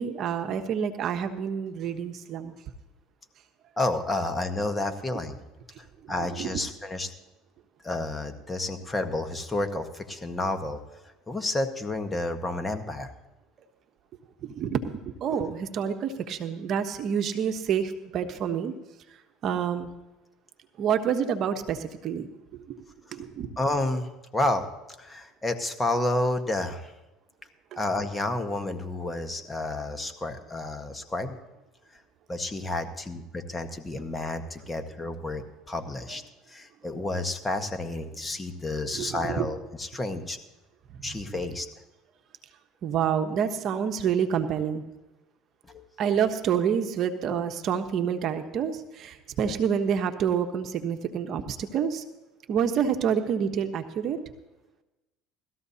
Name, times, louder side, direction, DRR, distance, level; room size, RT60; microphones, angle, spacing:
voice 1, 0.0-2.5 6.0-6.1 6.4-6.5 14.4-18.7 19.4-19.9 20.8-22.3 22.7-22.8 23.1-23.5 27.7-27.8 38.9-39.5 42.8-44.8 46.0-52.0 52.5-54.2, right 8 dB, 55° right, 8 dB, 1.0 m, -28 dB
voice 2, 3.8-5.4 6.1-7.1 7.8-10.8 11.3-13.1 23.6-24.6 25.0-26.9 27.7-31.4 32.3-36.2 36.5-40.4 41.0-41.7 45.7-45.8, left 2 dB, 15° left, 7 dB, 1.3 m, -30 dB
18.5 x 13.5 x 2.8 m, 1.0 s
supercardioid pair, 90°, 0 cm